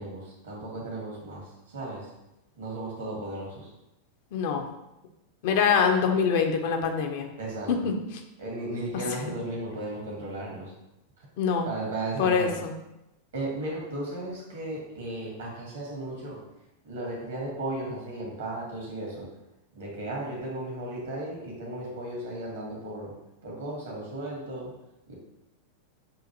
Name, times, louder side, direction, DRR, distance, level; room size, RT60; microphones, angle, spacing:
voice 1, 0.0-2.1 2.5-3.7 7.4-7.7 8.4-10.7 11.2-11.3 11.6-12.6 13.3-16.4 16.8-19.3 19.7-23.1 23.4-24.7 25.1-25.2, right 2 dB, 65° right, -2 dB, 1.5 m, -35 dB
voice 2, 4.3-4.6 5.4-7.3 7.7-7.9 9.1-9.2 11.4-11.7 12.2-12.7, left 6 dB, 50° left, 4 dB, 0.6 m, -24 dB
6.3 x 2.6 x 2.9 m, 0.91 s
figure-of-eight pair, 90°, 0 cm